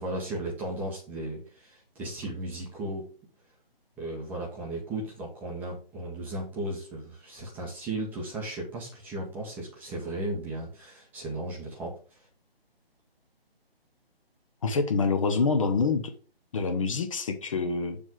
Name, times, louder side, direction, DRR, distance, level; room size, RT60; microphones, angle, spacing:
voice 1, 0.0-3.1 4.0-11.9, right 1 dB, 5° right, -3 dB, 0.8 m, -35 dB
voice 2, 14.6-16.1 16.5-18.0, left 4 dB, 35° left, 7 dB, 0.8 m, -26 dB
7.0 x 3.3 x 6.0 m, 0.39 s
figure-of-eight pair, 145°, 31 cm